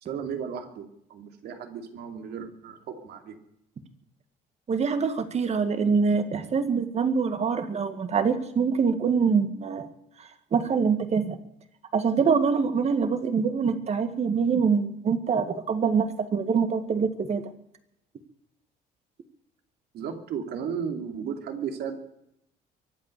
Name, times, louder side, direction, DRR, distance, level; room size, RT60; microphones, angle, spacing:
voice 1, 0.0-3.4 19.9-22.0, right 7 dB, 70° right, 5 dB, 2.7 m, -35 dB
voice 2, 4.7-9.9 10.5-11.4 11.9-17.4, right 5 dB, 40° right, 9 dB, 2.0 m, -24 dB
23.5 x 8.6 x 6.8 m, 0.79 s
cardioid pair, 110°, 17 cm